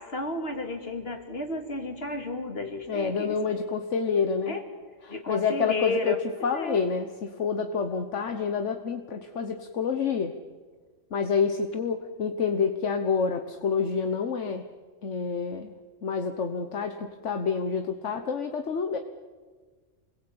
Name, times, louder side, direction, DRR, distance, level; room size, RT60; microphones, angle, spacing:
voice 1, 0.0-3.4 4.5-4.6 5.1-6.8, left 2 dB, 55° left, 4 dB, 3.0 m, -32 dB
voice 2, 2.9-4.6 5.1-6.2 6.4-10.3 11.1-14.7 15.0-15.7 16.0-19.0, left 5 dB, 70° left, 6 dB, 1.6 m, -28 dB
29.0 x 21.5 x 8.8 m, 1.5 s
omnidirectional pair, 1.3 m